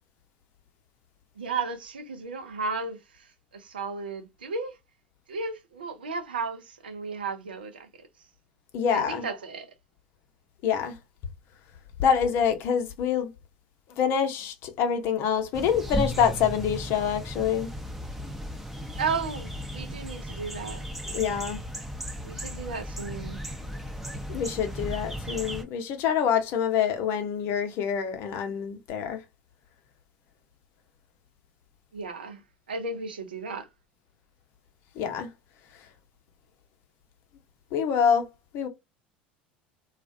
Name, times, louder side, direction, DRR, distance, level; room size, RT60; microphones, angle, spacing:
voice 1, 1.4-4.8 5.3-7.9 8.9-9.7 19.0-20.8 22.2-23.4 31.9-32.4 32.7-33.7, right 4 dB, 85° right, 0.5 m, -34 dB
voice 2, 8.7-9.3 10.6-10.9 12.0-13.3 14.0-17.7 21.1-21.6 24.3-29.2 35.0-35.3 37.7-38.2 38.5-38.7, left 7 dB, 55° left, 0.6 m, -26 dB
sound 1, 15.5-25.6, equal, 5° right, 0.6 m, -35 dB
2.3 x 2.1 x 2.5 m
hypercardioid pair, 75°, 5 cm